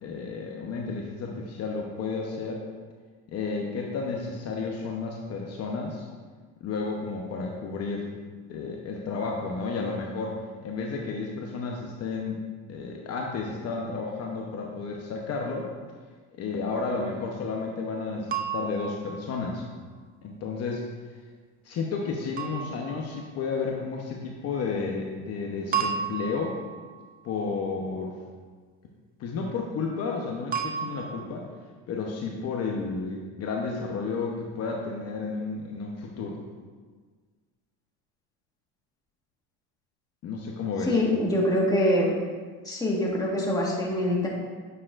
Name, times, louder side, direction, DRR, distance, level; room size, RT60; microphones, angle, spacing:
voice 1, 0.0-2.6 3.3-6.1 6.6-8.1 8.5-10.4 10.6-12.4 12.7-15.6 16.4-19.6 20.2-20.8 21.6-26.5 27.2-28.1 29.2-31.4 31.9-36.4 40.2-41.0, left 4 dB, 45° left, 0 dB, 0.9 m, -32 dB
sound 1, 18.3-19.8 22.4-23.5 25.7-27.1 30.5-31.3, right 7 dB, 25° right, 0.6 m, -33 dB
voice 2, 40.8-42.1 42.6-44.3, left 1 dB, 10° left, -3 dB, 1.5 m, -24 dB
8.8 x 6.9 x 2.5 m, 1.5 s
supercardioid pair, 115°, 33 cm